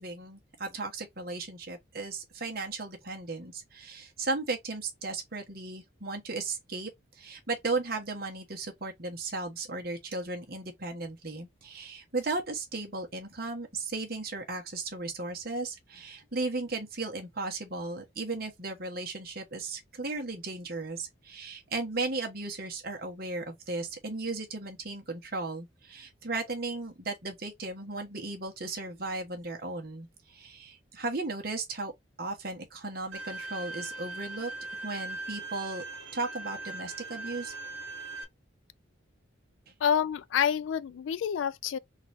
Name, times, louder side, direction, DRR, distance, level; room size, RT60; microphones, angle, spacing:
voice 1, 0.0-31.9 32.2-34.5 34.8-35.8 36.1-37.5 39.7-39.8, right 3 dB, 50° right, 1.2 m, -36 dB
Bowed string instrument, 33.1-38.2, right 3 dB, 70° right, 1.0 m, -40 dB
voice 2, 39.8-41.8, left 8 dB, 75° left, 0.3 m, -28 dB
3.9 x 2.6 x 3.4 m
head